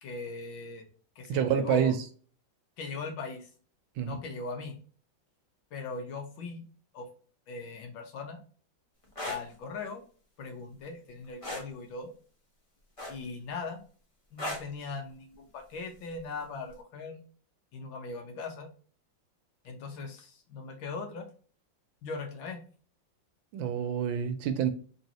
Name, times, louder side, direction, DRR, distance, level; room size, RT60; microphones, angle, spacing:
voice 1, 0.0-0.9 1.2-1.9 2.8-3.5 4.0-4.8 5.7-6.6 6.9-7.1 7.5-8.4 9.2-10.0 10.4-12.1 13.1-13.8 14.3-17.2 17.7-18.7 19.7-21.3 22.0-22.6, left 4 dB, 85° left, 1.7 m, -39 dB
voice 2, 1.3-2.0 4.0-4.2 23.5-24.7, right 8 dB, 85° right, 1.4 m, -27 dB
sound 1, 9.0-9.4 11.4-11.7 13.0-13.4 14.4-14.7 16.1-16.3, left 1 dB, 25° left, 0.7 m, -36 dB
4.0 x 3.1 x 2.9 m
omnidirectional pair, 2.1 m